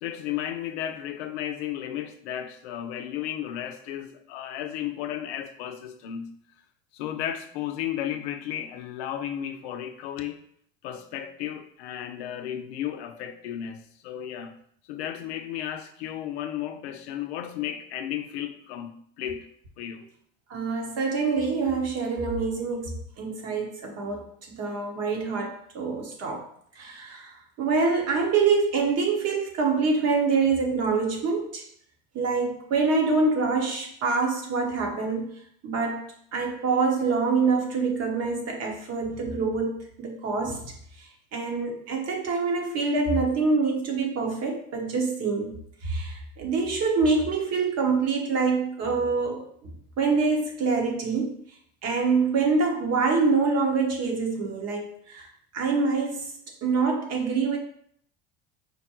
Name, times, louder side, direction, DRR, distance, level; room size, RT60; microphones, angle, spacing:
voice 1, 0.0-6.3 6.9-10.4 10.8-14.5 14.9-19.5 19.8-20.0, left 11 dB, 80° left, 8 dB, 0.5 m, -34 dB
voice 2, 20.5-26.4 26.8-31.6 32.1-35.3 35.6-40.7 41.3-45.6 45.8-51.4 51.8-56.3 56.6-57.6, right 4 dB, 50° right, 1 dB, 1.1 m, -26 dB
5.1 x 2.2 x 2.9 m, 0.64 s
hypercardioid pair, 85°, 32 cm